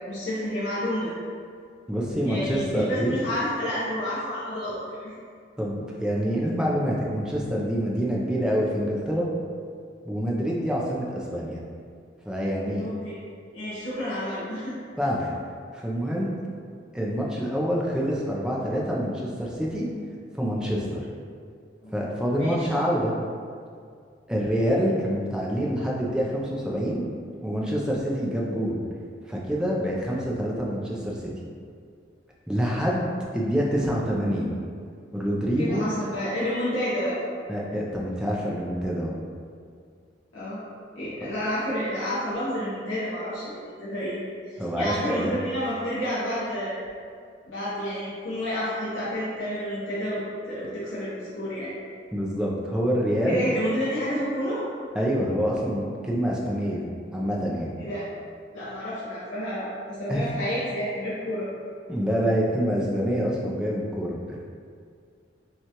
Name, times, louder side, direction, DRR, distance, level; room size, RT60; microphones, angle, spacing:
voice 1, 0.1-1.1 2.2-5.1 12.8-13.2 13.5-14.8 21.8-21.9 22.4-22.6 35.6-37.2 40.3-40.6 40.9-44.2 44.8-46.8 47.5-51.7 53.3-54.6 57.8-58.0 58.5-61.5, equal, 90° left, -10 dB, 0.9 m, -30 dB
voice 2, 1.9-3.1 5.6-9.3 10.0-11.6 12.3-12.8 15.0-15.3 15.7-16.3 16.9-19.9 20.4-21.0 21.9-23.1 24.3-27.0 27.4-28.8 29.3-31.3 32.5-33.1 33.3-34.5 35.1-35.8 37.5-39.1 44.6-45.4 52.1-53.4 54.9-56.9 57.1-57.7 60.1-60.4 61.9-64.2, equal, 5° right, -4 dB, 0.4 m, -26 dB
5.7 x 2.3 x 2.9 m, 2.2 s
head